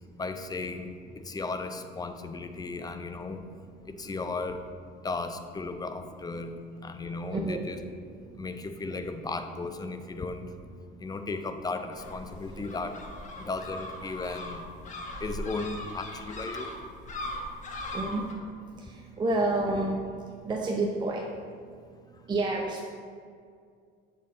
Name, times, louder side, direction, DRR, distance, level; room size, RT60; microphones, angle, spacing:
voice 1, 0.2-0.9 1.2-3.4 3.9-4.6 5.0-6.5 6.8-7.8 8.4-10.4 11.0-13.0 13.4-14.6 15.2-16.7, left 3 dB, 20° left, 7 dB, 0.5 m, -35 dB
voice 2, 7.3-7.7 12.6-12.7 17.9-18.2 19.2-20.0 20.4-21.2 22.3-22.9, right 2 dB, 20° right, -1 dB, 0.6 m, -28 dB
sound 1, 11.9-18.3, left 1 dB, 35° left, 1.1 m, -39 dB
7.2 x 4.4 x 3.7 m, 2.2 s
supercardioid pair, 100°, 20 cm